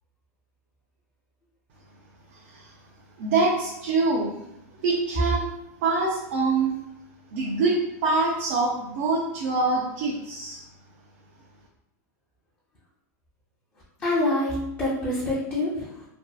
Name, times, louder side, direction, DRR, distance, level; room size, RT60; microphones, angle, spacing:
voice 1, 3.2-4.3 4.8-5.5 5.8-6.8 7.3-10.6, right 3 dB, 55° right, -2 dB, 0.5 m, -24 dB
voice 2, 14.0-16.1, left 1 dB, 20° left, -7 dB, 0.5 m, -26 dB
2.6 x 2.3 x 2.3 m, 0.84 s
supercardioid pair, 145°, 9 cm